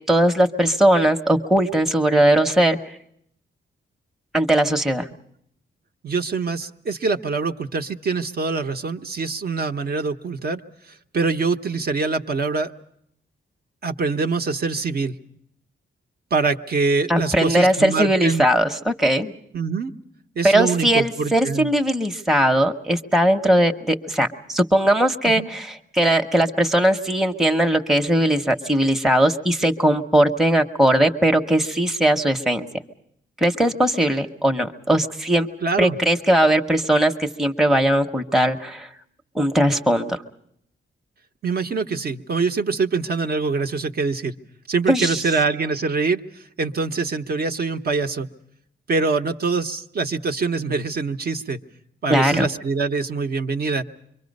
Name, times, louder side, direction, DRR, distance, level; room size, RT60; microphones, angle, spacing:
voice 1, 0.1-2.8 4.3-5.1 17.1-19.3 20.4-32.7 33.4-35.5 35.8-38.9 39.3-40.2 44.9-45.2 52.1-52.4, right 1 dB, ahead, 4 dB, 0.8 m, -19 dB
voice 2, 6.0-10.6 10.9-12.7 13.8-15.1 16.3-18.4 19.5-19.9 20.4-21.7 25.2-25.5 35.6-36.0 41.4-44.3 44.7-48.3 48.9-51.6 52.0-53.8, right 4 dB, 50° right, 6 dB, 0.8 m, -24 dB
26.0 x 23.5 x 5.3 m, 0.71 s
wide cardioid pair, 140°, 21 cm